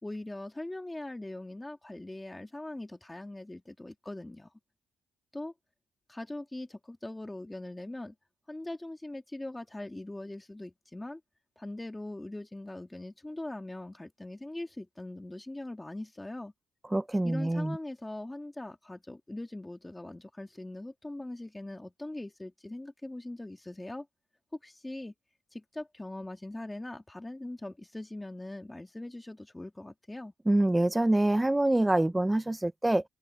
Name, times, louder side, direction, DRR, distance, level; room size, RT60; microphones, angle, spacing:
voice 1, 0.0-4.5 5.3-5.5 6.1-8.1 8.5-11.2 11.6-16.5 17.2-24.1 24.6-25.1 25.5-30.3, left 1 dB, 10° left, 2.0 m, -41 dB
voice 2, 16.9-17.8 30.5-33.0, right 1 dB, 10° right, 0.4 m, -25 dB
open air
cardioid pair, 110°, 0 cm